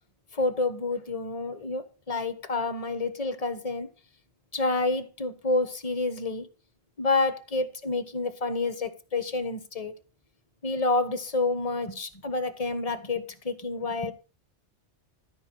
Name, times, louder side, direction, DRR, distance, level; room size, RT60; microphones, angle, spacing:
voice 1, 0.3-3.9 4.5-6.5 7.0-9.9 10.6-14.1, left 3 dB, 35° left, 1.3 m, -29 dB
13.0 x 4.7 x 6.2 m
omnidirectional pair, 1.1 m